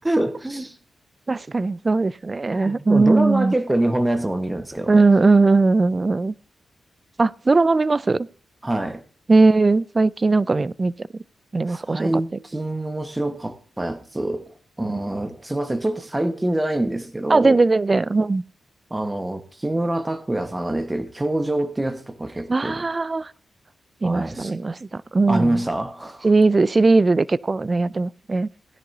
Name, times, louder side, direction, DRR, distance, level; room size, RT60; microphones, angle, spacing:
voice 1, 0.0-0.8 2.5-5.0 8.6-9.0 11.7-14.4 14.8-17.6 18.9-22.8 24.0-24.5 25.3-26.3, right 1 dB, 20° right, 1.4 m, -25 dB
voice 2, 1.3-3.5 4.9-6.3 7.2-8.3 9.3-11.1 11.5-12.1 14.9-15.0 17.3-18.4 22.5-23.3 24.0-25.6 26.2-28.5, right 3 dB, 40° right, 0.4 m, -19 dB
16.5 x 10.5 x 2.8 m
supercardioid pair, 40°, 0 cm